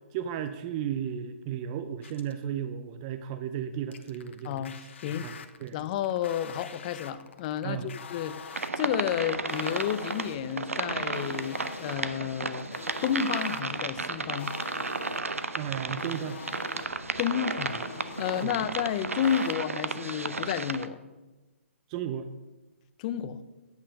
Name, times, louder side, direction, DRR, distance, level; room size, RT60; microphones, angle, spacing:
voice 1, 0.1-4.6 5.2-5.3 5.6-5.7 7.6-7.9 15.6-16.4 18.4-18.5 21.9-22.3, right 9 dB, 30° right, 9 dB, 0.4 m, -34 dB
sound 1, 2.0-2.4 3.9-19.5, left 6 dB, 60° left, 0.9 m, -45 dB
voice 2, 4.4-4.8 5.0-5.3 5.7-8.4 8.8-12.7 13.0-14.6 17.2-17.8 18.2-21.0 23.0-23.4, left 9 dB, 35° left, 14 dB, 0.5 m, -31 dB
sound 2, 8.5-20.9, right 3 dB, 80° right, 0.7 m, -33 dB
9.0 x 5.6 x 6.3 m, 1.2 s
figure-of-eight pair, 130°, 7 cm